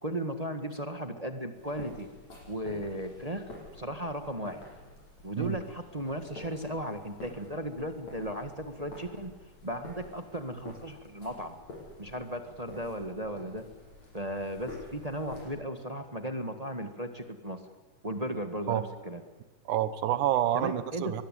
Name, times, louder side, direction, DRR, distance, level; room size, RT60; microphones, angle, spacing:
voice 1, 0.0-2.1 2.5-4.6 5.2-9.3 9.6-11.6 12.0-13.6 14.1-17.6 18.0-19.2 20.5-21.1, right 1 dB, 20° right, 7 dB, 1.1 m, -36 dB
sound 1, 1.5-15.5, left 2 dB, 65° left, 8.5 m, -49 dB
voice 2, 19.7-21.2, right 12 dB, 85° right, 13 dB, 2.6 m, -28 dB
24.0 x 21.5 x 9.2 m, 1.2 s
omnidirectional pair, 3.4 m